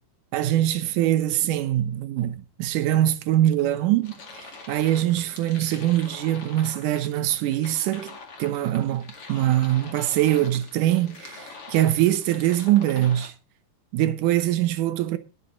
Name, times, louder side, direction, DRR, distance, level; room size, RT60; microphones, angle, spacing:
voice 1, 0.3-8.1 8.4-13.3 13.9-15.2, right 13 dB, 80° right, 1.8 m, -23 dB
sound 1, 4.0-13.3, left 4 dB, 40° left, 2.5 m, -44 dB
18.5 x 6.8 x 3.9 m
omnidirectional pair, 4.7 m